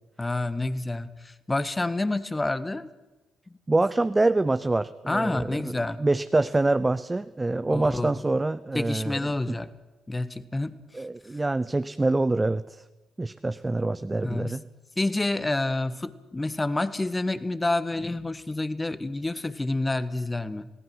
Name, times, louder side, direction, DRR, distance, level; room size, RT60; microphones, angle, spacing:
voice 1, 0.2-2.9 5.1-6.0 7.7-8.2 8.7-9.7 10.1-11.0 14.2-14.5 15.0-20.7, left 2 dB, 20° left, 14 dB, 1.4 m, -28 dB
voice 2, 3.7-9.6 10.9-12.8 13.2-14.6, right 2 dB, 20° right, 13 dB, 0.7 m, -26 dB
27.5 x 18.5 x 6.2 m, 1.0 s
figure-of-eight pair, 45°, 0 cm